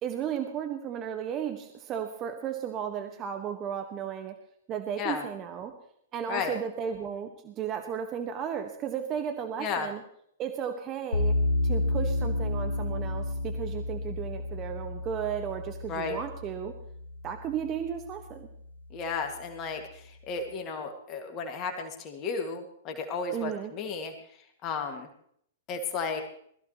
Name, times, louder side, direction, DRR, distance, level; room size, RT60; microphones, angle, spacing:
voice 1, 0.0-4.4 4.7-5.7 6.1-10.0 10.4-11.4 11.6-16.7 17.2-18.5 23.3-23.7, right 8 dB, 30° right, 5 dB, 1.5 m, -34 dB
voice 2, 9.6-9.9 15.9-16.2 18.9-24.1 24.6-25.1 25.7-26.2, left 5 dB, 35° left, 4 dB, 2.1 m, -33 dB
sound 1, 11.1-18.2, left 2 dB, 80° left, 3.6 m, -31 dB
21.0 x 14.5 x 3.1 m, 0.67 s
hypercardioid pair, 110°, 0 cm